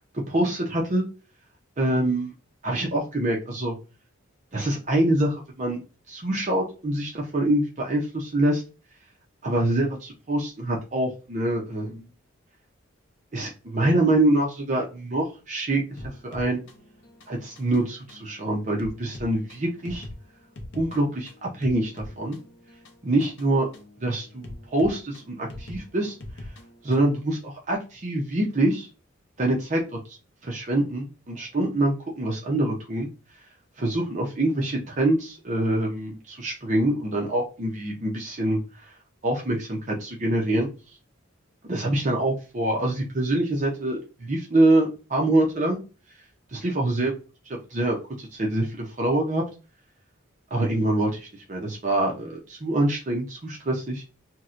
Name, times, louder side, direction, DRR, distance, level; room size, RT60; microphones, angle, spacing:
voice 1, 0.1-1.0 1.8-2.3 2.6-3.8 4.5-5.8 6.1-8.6 9.4-12.1 13.3-16.6 17.3-20.1 20.7-22.4 23.0-23.7 24.0-26.2 26.8-28.9 29.4-30.2 30.4-33.1 33.8-38.6 39.2-40.7 41.6-45.8 46.5-47.1 47.7-49.4 50.5-54.1, right 1 dB, 35° right, -1 dB, 0.5 m, -25 dB
sound 1, 16.0-27.2, left 1 dB, 60° left, 0.6 m, -43 dB
4.1 x 2.1 x 2.4 m, 0.33 s
head